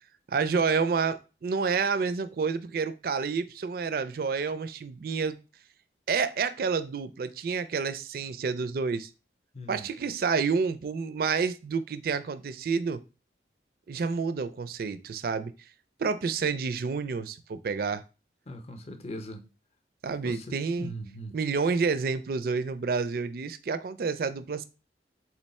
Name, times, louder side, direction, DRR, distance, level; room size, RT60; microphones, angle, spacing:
voice 1, 0.3-5.4 6.1-9.1 9.7-13.0 13.9-15.5 16.0-18.0 20.0-20.9 21.3-24.6, right 5 dB, 55° right, 0.4 m, -29 dB
voice 2, 9.5-9.9 18.5-19.4 20.2-21.3, equal, 35° left, 0.6 m, -40 dB
3.9 x 3.1 x 4.2 m
head